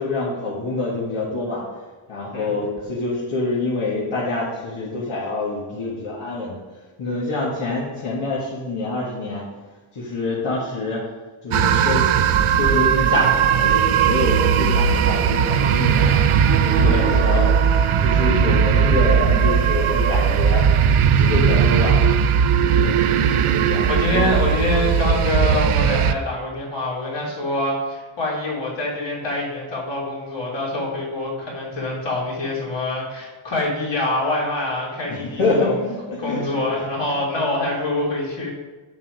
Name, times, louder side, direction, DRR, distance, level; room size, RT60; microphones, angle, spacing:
voice 1, 0.0-1.6 2.1-6.6 7.0-9.5 9.9-11.1 11.4-16.2 16.6-17.5 18.0-20.6 21.1-22.0 22.7-23.0 23.5-24.4 35.1-36.9 37.1-37.2, left 3 dB, 80° left, -6 dB, 1.9 m, -26 dB
sound 1, 11.5-26.1, right 7 dB, 85° right, 0.7 m, -18 dB
voice 2, 16.8-17.5 22.6-23.0 23.9-35.7 36.2-38.5, left 2 dB, 60° left, -4 dB, 3.0 m, -25 dB
7.3 x 6.6 x 5.0 m, 1.3 s
wide cardioid pair, 105°, 50 cm